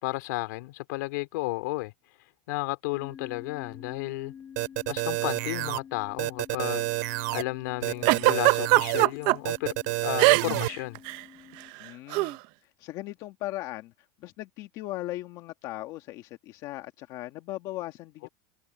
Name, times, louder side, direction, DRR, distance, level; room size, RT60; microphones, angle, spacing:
voice 1, 0.0-1.9 2.5-4.3 4.9-9.7 10.0-11.0, left 21 dB, 65° left, 2.6 m, -33 dB
sound 1, 2.9-11.7, left 8 dB, 20° left, 6.7 m, -48 dB
sound 2, 4.6-5.8 6.2-7.4 7.8-9.1 9.4-10.7, right 24 dB, 60° right, 4.5 m, -29 dB
Giggle, 8.1-9.4 10.2-10.7 11.0-11.2 12.1-12.3, right 22 dB, 45° right, 0.6 m, -20 dB
voice 2, 11.8-12.4 12.6-13.9 14.2-18.3, left 16 dB, 40° left, 1.7 m, -38 dB
supercardioid pair, 165°, 10 cm